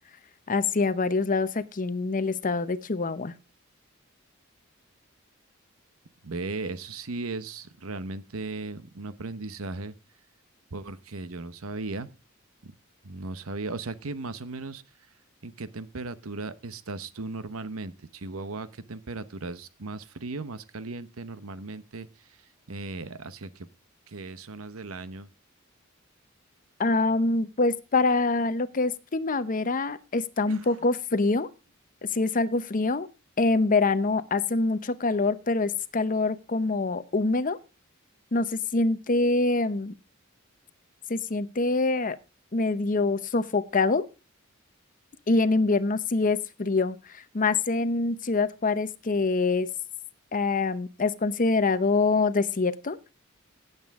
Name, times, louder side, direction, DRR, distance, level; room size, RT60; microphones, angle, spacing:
voice 1, 0.5-3.3 26.8-31.5 32.1-33.1 33.4-37.6 38.3-39.9 41.1-42.2 42.5-44.0 45.3-49.7 50.3-53.0, left 3 dB, 40° left, 14 dB, 0.8 m, -25 dB
voice 2, 6.2-9.9 10.7-12.1 12.6-12.7 13.0-14.8 15.4-22.4 22.7-23.7 24.1-25.3 30.5-30.7, right 3 dB, 85° right, 14 dB, 0.9 m, -37 dB
16.5 x 8.2 x 3.6 m, 0.29 s
head